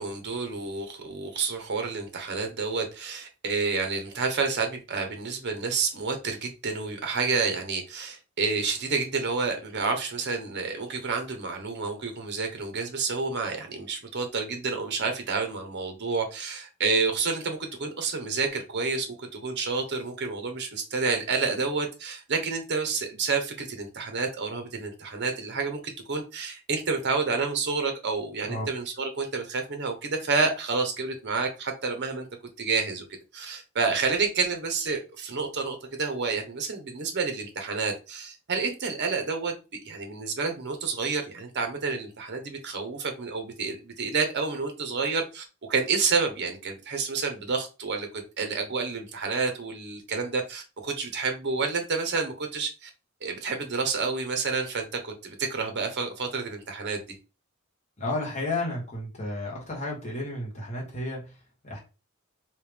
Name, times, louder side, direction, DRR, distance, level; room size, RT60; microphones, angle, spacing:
voice 1, 0.0-32.3 32.6-33.0 33.3-39.5 39.8-48.1 48.4-52.9 53.2-57.0, right 4 dB, 55° right, 5 dB, 0.8 m, -29 dB
voice 2, 58.0-61.8, left 2 dB, 35° left, -3 dB, 1.2 m, -32 dB
3.3 x 2.8 x 3.4 m, 0.30 s
head